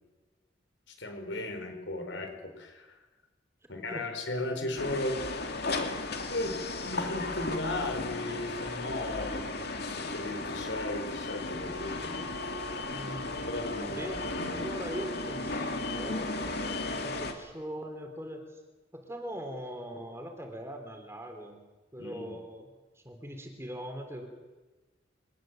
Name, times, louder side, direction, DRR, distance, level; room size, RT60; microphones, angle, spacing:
voice 1, 0.9-3.0 3.7-5.4 6.3-12.2 13.5-14.2 22.0-22.3, left 2 dB, 75° left, 5 dB, 5.0 m, -36 dB
sound 1, 4.8-17.3, left 2 dB, 60° left, 2.5 m, -35 dB
voice 2, 12.9-13.4 13.8-18.6 18.9-21.6 21.9-24.3, equal, 15° right, 4 dB, 3.4 m, -41 dB
23.5 x 19.5 x 7.7 m, 1.2 s
head